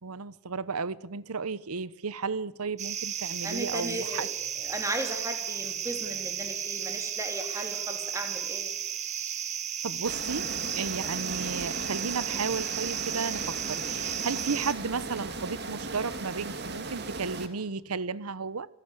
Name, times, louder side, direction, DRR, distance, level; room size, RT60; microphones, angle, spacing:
voice 1, 0.0-4.3 9.8-10.5 10.7-18.7, right 5 dB, 90° right, 0.9 m, -33 dB
sound 1, 2.8-14.7, right 9 dB, 30° right, 1.1 m, -34 dB
voice 2, 3.4-8.7 11.0-11.1, right 1 dB, 15° right, 3.4 m, -36 dB
sound 2, 10.0-17.5, right 3 dB, 50° right, 2.2 m, -37 dB
25.5 x 17.5 x 8.3 m
head